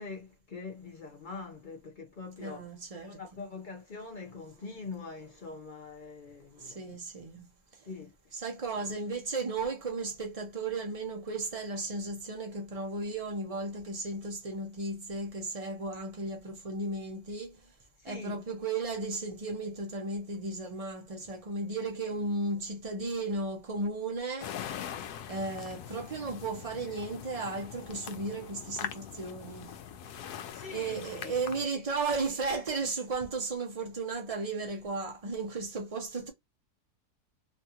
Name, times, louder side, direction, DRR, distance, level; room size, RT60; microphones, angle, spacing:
voice 1, 0.0-2.7 3.0-7.0 7.9-8.1 18.0-18.4 30.5-31.8, left 4 dB, 50° left, 0.6 m, -44 dB
voice 2, 2.4-3.2 6.6-7.5 8.3-17.7 18.0-24.5 25.3-29.7 30.7-36.3, right 3 dB, 65° right, 0.3 m, -35 dB
sound 1, 24.4-31.7, left 9 dB, 80° left, 1.1 m, -42 dB
3.2 x 2.5 x 2.8 m
omnidirectional pair, 1.7 m